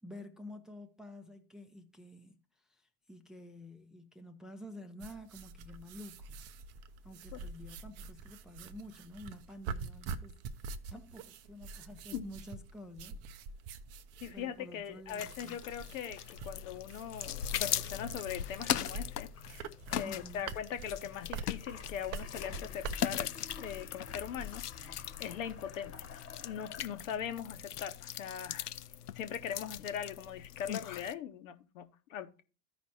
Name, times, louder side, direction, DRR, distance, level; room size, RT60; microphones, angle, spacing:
voice 1, 0.0-6.4 7.0-13.2 14.3-15.6 20.0-20.5, left 1 dB, ahead, 0.7 m, -50 dB
sound 1, 5.0-23.3, right 4 dB, 35° right, 0.6 m, -45 dB
voice 2, 14.2-23.3 23.6-28.7 29.1-32.4, left 8 dB, 60° left, 1.1 m, -41 dB
sound 2, 15.1-31.1, left 10 dB, 85° left, 0.5 m, -40 dB
sound 3, 18.8-27.3, left 6 dB, 30° left, 1.3 m, -51 dB
14.0 x 5.1 x 2.7 m
figure-of-eight pair, 85°, 45 cm